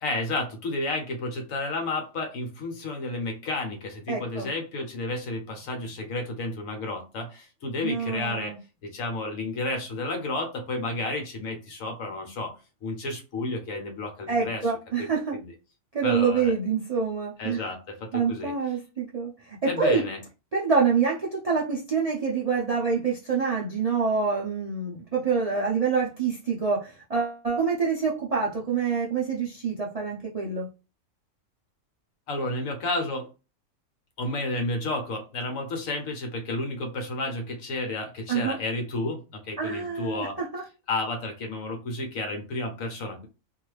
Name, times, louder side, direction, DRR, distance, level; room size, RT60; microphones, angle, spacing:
voice 1, 0.0-8.6 8.8-12.5 12.8-14.7 15.0-15.1 15.3-15.5 16.0-16.5 17.4-18.5 19.6-20.2 32.3-33.3 34.2-40.4 40.9-43.3, left 2 dB, 65° left, 4 dB, 1.2 m, -31 dB
voice 2, 4.1-4.5 7.8-8.6 14.3-15.4 15.9-17.6 18.1-19.3 19.6-20.0 20.5-30.7 38.3-38.6 39.6-40.6, right 5 dB, 55° right, -4 dB, 0.4 m, -26 dB
2.6 x 2.4 x 3.1 m, 0.31 s
omnidirectional pair, 1.6 m